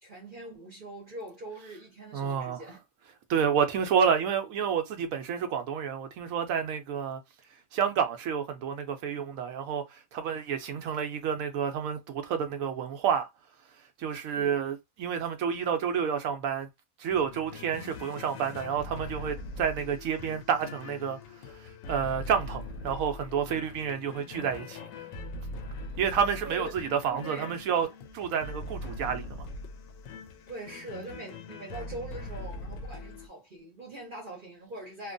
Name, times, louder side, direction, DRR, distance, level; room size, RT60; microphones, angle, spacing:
voice 1, 0.0-2.8 14.3-14.5 26.4-27.9 30.5-35.1, right 2 dB, 45° right, 0.9 m, -42 dB
voice 2, 2.1-2.6 3.3-7.2 7.7-13.3 14.0-16.7 17.0-21.2 21.9-24.8 26.0-27.9 28.1-29.5, right 7 dB, 80° right, 1.0 m, -29 dB
sound 1, 17.1-33.3, left 2 dB, 75° left, 0.9 m, -42 dB
2.9 x 2.2 x 2.5 m
omnidirectional pair, 1.4 m